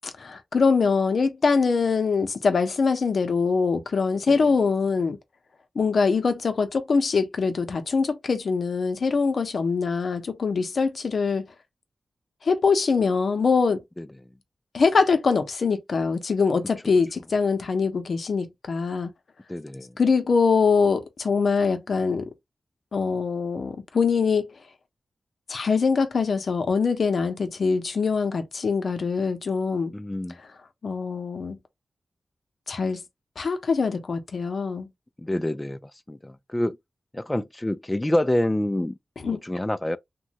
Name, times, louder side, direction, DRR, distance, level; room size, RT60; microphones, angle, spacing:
voice 1, 0.2-5.2 5.8-11.4 12.4-13.8 14.7-19.1 20.0-22.3 22.9-24.5 25.5-29.9 30.8-31.6 32.7-33.0 33.4-34.9 39.2-39.4, left 5 dB, 70° left, 0.6 m, -23 dB
voice 2, 19.5-19.9 29.9-30.4 35.2-35.8 36.1-36.8 37.1-38.9 39.3-40.0, left 1 dB, 15° left, 0.3 m, -27 dB
3.0 x 2.2 x 2.8 m
wide cardioid pair, 80°, 0 cm